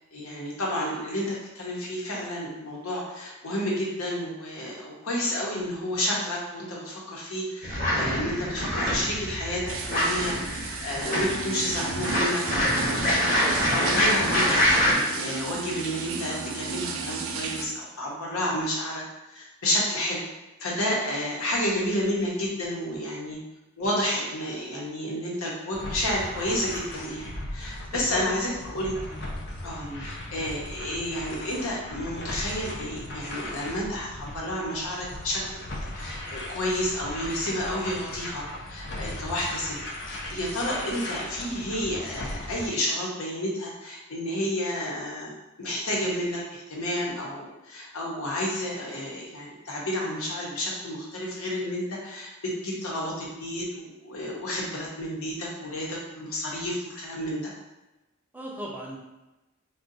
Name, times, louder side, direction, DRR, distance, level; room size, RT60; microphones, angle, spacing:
voice 1, 0.1-19.0 19.3-20.2 20.6-23.4 23.8-28.9 29.6-35.4 35.9-39.8 40.0-45.3 45.6-57.5, left 1 dB, 85° left, -3 dB, 0.9 m, -31 dB
sound 1, 7.6-14.9, equal, 40° left, 1.0 m, -25 dB
sound 2, 9.7-17.7, right 5 dB, 75° right, 0.4 m, -34 dB
sound 3, 25.7-42.7, left 1 dB, 55° left, 0.5 m, -38 dB
voice 2, 27.9-28.6 29.1-29.3 29.8-30.0 58.3-59.0, equal, 10° right, -3 dB, 0.4 m, -38 dB
2.6 x 2.3 x 3.9 m, 1.0 s
head